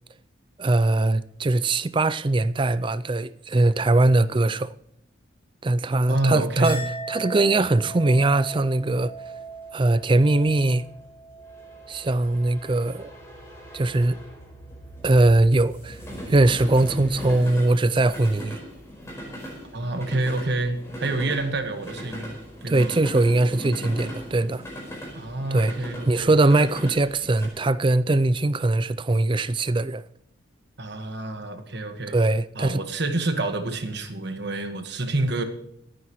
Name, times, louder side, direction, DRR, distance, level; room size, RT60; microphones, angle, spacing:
voice 1, 0.6-4.7 5.6-6.8 7.1-9.1 9.7-10.8 11.9-13.1 13.7-14.2 15.0-16.0 16.3-18.6 22.7-24.6 25.5-25.7 26.1-30.0 32.1-32.8, right 2 dB, 25° right, 0.4 m, -21 dB
voice 2, 6.1-6.8 19.7-22.3 22.6-22.9 25.1-26.3 30.8-32.1 32.5-35.4, right 2 dB, 55° right, 1.5 m, -27 dB
Chink clink, 6.6-13.2 13.6-14.2, right 3 dB, 30° left, 4.4 m, -40 dB
sound 1, 8.7-27.5, equal, 15° left, 4.6 m, -39 dB
26.5 x 9.7 x 3.1 m
head